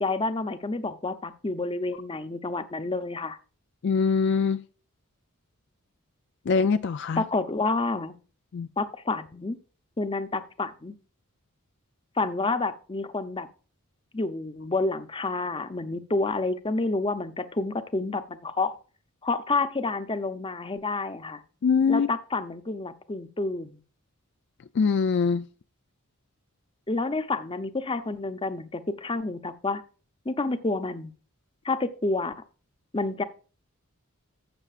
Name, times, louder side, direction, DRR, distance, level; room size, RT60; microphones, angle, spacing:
voice 1, 0.0-3.4 7.2-8.1 8.8-9.6 10.0-11.0 12.2-13.5 14.1-18.8 19.2-21.4 21.9-23.8 26.9-29.8 30.3-31.1 31.6-32.3 32.9-33.2, left 3 dB, 25° left, 0.7 m, -29 dB
voice 2, 3.8-4.6 6.5-7.2 8.5-8.7 21.6-22.1 24.7-25.5, left 5 dB, 55° left, 0.4 m, -23 dB
12.5 x 8.2 x 2.4 m
head